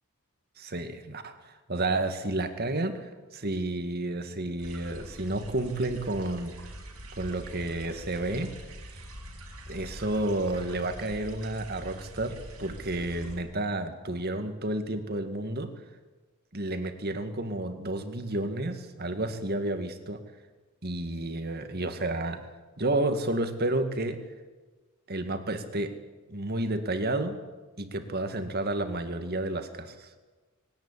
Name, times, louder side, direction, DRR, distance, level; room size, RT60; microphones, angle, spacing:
voice 1, 0.6-6.5 7.1-8.5 8.8-9.0 9.7-15.7 16.5-20.2 20.8-22.4 22.8-24.2 25.1-25.9 26.3-27.4 27.8-30.1, right 2 dB, 45° right, 8 dB, 2.0 m, -31 dB
sound 1, 4.6-13.4, equal, 90° right, 5.9 m, -44 dB
20.5 x 18.0 x 9.9 m, 1.3 s
head